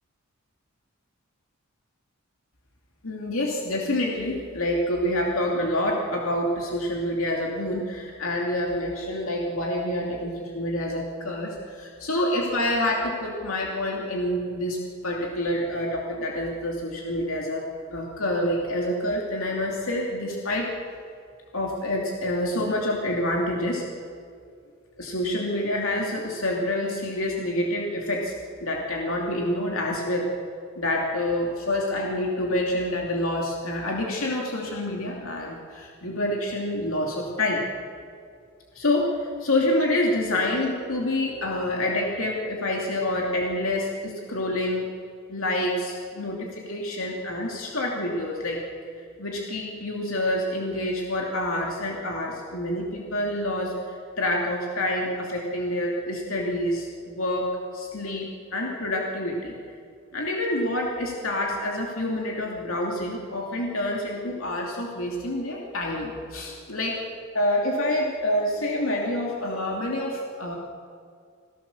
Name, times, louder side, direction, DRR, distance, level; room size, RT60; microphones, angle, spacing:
voice 1, 3.0-17.6 17.9-20.7 21.5-23.8 25.0-28.3 28.6-30.3 30.8-37.6 38.7-44.9 45.3-48.6 49.2-59.6 60.1-67.0 67.3-70.6, left 1 dB, 80° left, -1 dB, 2.7 m, -27 dB
27.5 x 16.0 x 7.1 m, 2.2 s
head